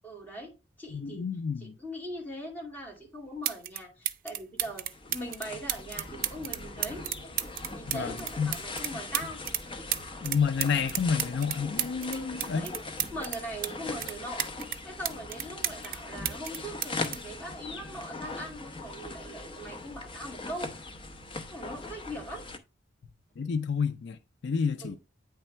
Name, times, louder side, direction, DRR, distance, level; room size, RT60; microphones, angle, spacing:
voice 1, 0.0-1.3 1.6-4.9 5.1-7.0 7.7-9.4 12.1-12.7 13.1-14.5 14.8-20.7 21.5-22.4 24.8-24.9, equal, 10° left, 2.1 m, -41 dB
voice 2, 0.9-1.7 7.9-8.5 10.2-12.7 23.4-25.0, left 6 dB, 65° left, 0.4 m, -30 dB
sound 1, 3.0-3.1 3.4-3.8 4.1-9.6 9.9-13.7 14.0-16.0 16.2-18.1 19.0-19.2, right 12 dB, 50° right, 0.4 m, -33 dB
sound 2, 4.6-22.6, left 3 dB, 30° left, 0.7 m, -40 dB
8.8 x 3.4 x 4.4 m
head